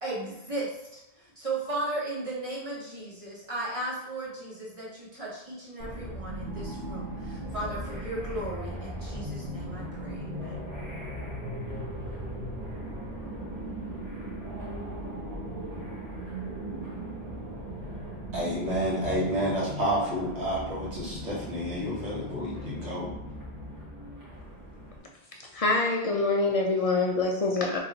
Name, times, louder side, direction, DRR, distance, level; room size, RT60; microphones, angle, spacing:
voice 1, 0.0-10.6, right 2 dB, 30° right, 1.1 m, -36 dB
sound 1, 5.8-25.0, right 1 dB, 60° right, 1.5 m, -38 dB
voice 2, 18.3-23.1, equal, 85° right, 1.7 m, -30 dB
voice 3, 25.5-27.8, left 3 dB, 55° left, 0.4 m, -25 dB
3.1 x 2.6 x 3.9 m
omnidirectional pair, 1.1 m